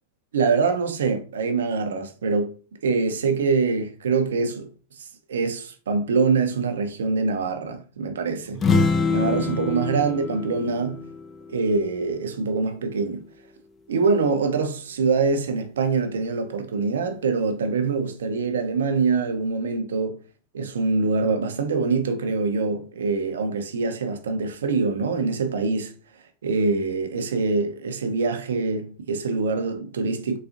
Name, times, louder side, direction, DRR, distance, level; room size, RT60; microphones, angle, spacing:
voice 1, 0.3-2.6 2.8-4.7 5.0-8.6 9.1-11.0 11.5-13.3 13.9-20.2 20.5-25.9 26.4-30.4, right 4 dB, 85° right, 0.6 m, -24 dB
sound 1, 8.5-12.3, left 4 dB, 30° left, 0.4 m, -25 dB
3.9 x 2.4 x 2.4 m
hypercardioid pair, 105°, 0 cm